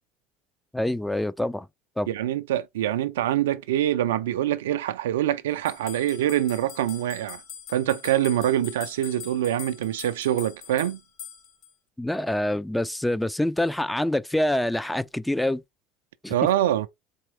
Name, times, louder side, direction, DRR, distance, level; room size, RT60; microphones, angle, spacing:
voice 1, 0.7-1.7 2.0-2.1 12.0-15.6 16.2-16.3, left 1 dB, 5° left, 0.3 m, -26 dB
voice 2, 2.1-7.4 7.7-11.0 16.3-16.9, right 12 dB, 75° right, 0.3 m, -25 dB
sound 1, 5.7-11.7, left 9 dB, 60° left, 1.0 m, -42 dB
4.2 x 3.0 x 3.1 m
figure-of-eight pair, 65°, 0 cm